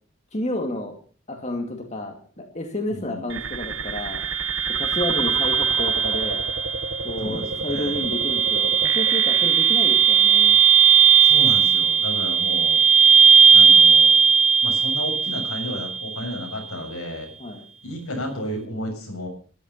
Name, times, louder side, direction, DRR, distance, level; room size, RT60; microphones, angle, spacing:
voice 1, 0.3-0.9 1.3-4.2 4.7-6.4 7.0-10.6 17.4-17.6, left 1 dB, 30° left, 3 dB, 2.3 m, -30 dB
sound 1, 3.3-16.3, right 6 dB, 65° right, 1.4 m, -18 dB
voice 2, 7.2-8.0 11.2-12.8 13.5-14.1 14.6-17.3 17.8-19.3, left 1 dB, 85° left, 2 dB, 6.9 m, -32 dB
13.5 x 12.0 x 7.3 m, 0.43 s
head